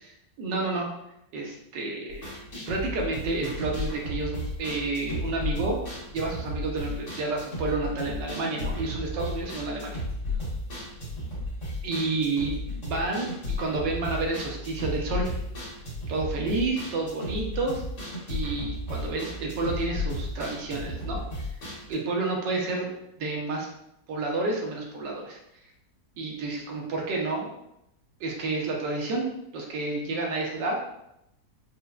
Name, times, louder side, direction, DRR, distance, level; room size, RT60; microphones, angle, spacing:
voice 1, 0.4-0.9 1.3-2.3 2.7-5.8 6.1-10.0 11.8-13.3 13.6-15.4 16.1-17.8 18.3-21.2 21.9-22.9 23.2-23.7 24.1-25.4 26.2-27.5 28.2-30.8, right 3 dB, 80° right, -1 dB, 1.4 m, -30 dB
sound 1, 2.1-21.9, left 1 dB, 70° left, 1.8 m, -34 dB
4.7 x 2.1 x 2.3 m, 0.82 s
omnidirectional pair, 1.9 m